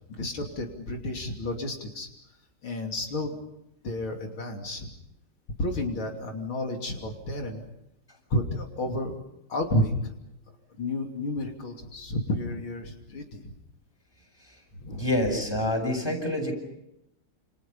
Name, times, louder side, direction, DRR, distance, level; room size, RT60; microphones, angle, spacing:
voice 1, 0.1-2.1 2.6-3.4 3.8-4.9 5.6-7.7 8.3-9.2 9.5-10.1 10.8-13.5 14.7-15.1, left 1 dB, 80° left, 2 dB, 3.9 m, -31 dB
voice 2, 15.0-16.5, left 1 dB, 10° left, 2 dB, 7.2 m, -27 dB
29.0 x 29.0 x 5.6 m, 0.84 s
omnidirectional pair, 2.2 m